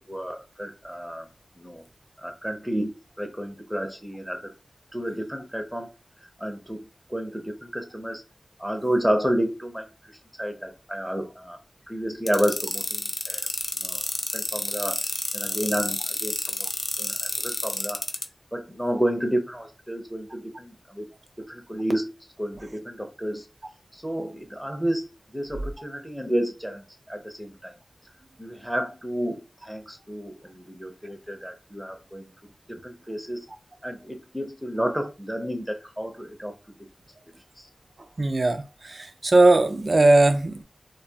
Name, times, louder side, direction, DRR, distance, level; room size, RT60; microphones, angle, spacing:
voice 1, 0.1-1.3 1.6-1.8 2.2-4.5 4.9-5.9 6.4-8.2 8.6-11.6 11.9-13.5 13.8-14.0 14.3-15.0 15.3-16.7 17.0-18.0 18.5-21.1 21.4-22.1 22.4-23.5 23.9-27.8 28.4-33.5 33.8-36.5 37.6-37.7, equal, 5° right, 0.6 m, -31 dB
sound 1, 12.3-18.2, left 2 dB, 50° left, 0.4 m, -29 dB
voice 2, 38.2-40.6, right 2 dB, 55° right, 0.4 m, -19 dB
2.2 x 2.2 x 2.7 m
wide cardioid pair, 75°, 0 cm